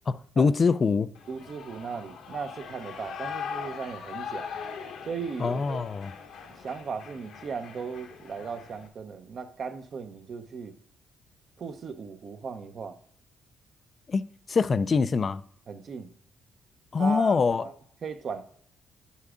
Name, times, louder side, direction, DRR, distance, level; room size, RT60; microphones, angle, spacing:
voice 1, 0.1-1.1 5.4-6.1 14.1-14.2 14.5-15.4 16.9-17.7, left 5 dB, 40° left, 0.3 m, -24 dB
Shout / Cheering, 1.1-8.9, left 6 dB, 80° left, 1.0 m, -41 dB
voice 2, 1.3-4.5 5.1-5.8 6.5-10.8 11.6-13.0 15.7-16.1 17.0-17.7 18.0-18.4, right 5 dB, 55° right, 0.7 m, -37 dB
9.9 x 8.2 x 2.4 m
cardioid pair, 90°, 0 cm